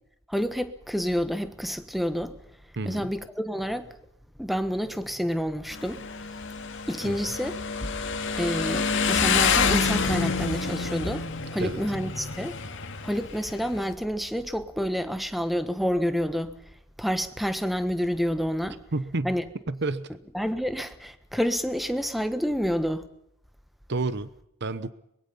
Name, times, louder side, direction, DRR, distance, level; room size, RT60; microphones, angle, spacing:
voice 1, 0.3-2.3 2.8-3.9 4.4-6.0 6.9-7.6 8.4-11.3 11.5-12.6 13.0-16.5 17.0-18.8 19.2-19.4 20.3-23.1, equal, ahead, 1.3 m, -28 dB
voice 2, 2.8-3.1 7.0-7.3 11.6-11.8 18.9-19.4 19.7-20.1 23.9-24.3 24.6-24.9, right 3 dB, 55° right, 0.9 m, -30 dB
Motorcycle, 5.7-13.9, left 5 dB, 60° left, 2.1 m, -28 dB
23.5 x 21.5 x 5.5 m
head